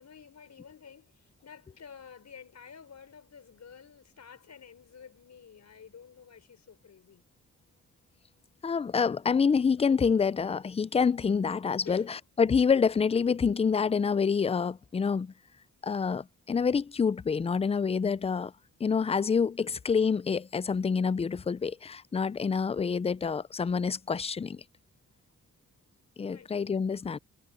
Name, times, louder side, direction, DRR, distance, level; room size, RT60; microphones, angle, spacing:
voice 1, 0.0-7.2 11.8-12.2 19.6-19.8 26.3-26.6, left 7 dB, 60° left, 5.3 m, -51 dB
voice 2, 8.6-15.3 15.8-18.5 18.8-24.6 26.2-27.2, left 6 dB, 20° left, 0.3 m, -27 dB
wide cardioid pair, 115°, 32 cm